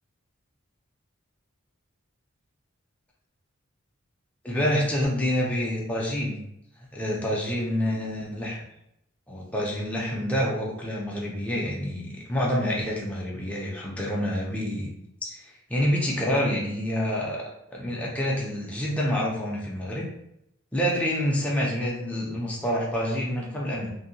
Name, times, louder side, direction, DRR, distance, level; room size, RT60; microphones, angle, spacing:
voice 1, 4.4-6.4 6.9-8.6 9.3-14.9 15.2-17.4 17.7-20.1 20.7-23.9, equal, 5° left, -4 dB, 0.4 m, -27 dB
2.6 x 2.1 x 2.7 m, 0.79 s
head